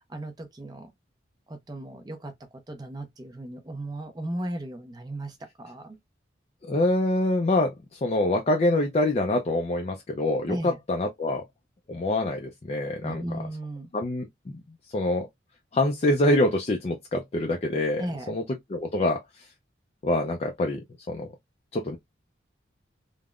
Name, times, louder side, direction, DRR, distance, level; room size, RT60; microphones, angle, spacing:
voice 1, 0.1-0.9 1.5-2.3 2.7-6.0 10.5-10.8 13.0-13.9 18.0-18.4, right 1 dB, 20° right, 0.5 m, -36 dB
voice 2, 6.6-11.4 11.9-13.2 13.9-14.3 14.9-15.3 15.7-18.4 18.7-19.5 20.0-20.8 21.1-21.3 21.7-22.0, left 1 dB, 30° left, 0.3 m, -25 dB
3.4 x 2.1 x 2.3 m
head